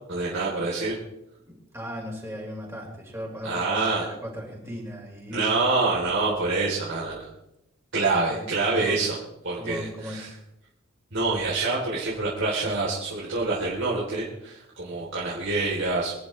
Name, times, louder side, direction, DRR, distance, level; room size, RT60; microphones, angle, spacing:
voice 1, 0.1-1.0 3.4-4.0 5.3-7.3 7.9-9.2 9.4-10.3 11.1-16.2, right 3 dB, 65° right, -6 dB, 3.5 m, -26 dB
voice 2, 1.5-5.5 8.3-9.1 9.5-10.4, equal, 15° right, -3 dB, 4.6 m, -37 dB
25.5 x 11.5 x 3.3 m, 0.87 s
head